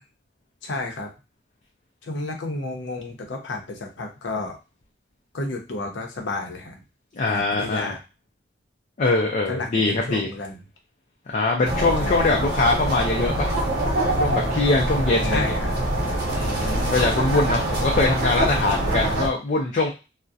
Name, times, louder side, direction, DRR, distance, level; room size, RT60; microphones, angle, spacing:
voice 1, 0.6-1.1 2.1-4.6 5.3-6.8 7.3-8.0 9.5-10.5 12.0-12.1 15.3-15.7, left 2 dB, 90° left, 2 dB, 0.6 m, -31 dB
voice 2, 7.2-8.0 9.0-10.3 11.3-13.6 14.2-15.5 16.3-19.9, left 3 dB, 45° left, 0 dB, 0.4 m, -23 dB
sound 1, 11.6-19.3, right 1 dB, 55° right, 0.7 m, -24 dB
2.6 x 2.1 x 2.3 m, 0.28 s
head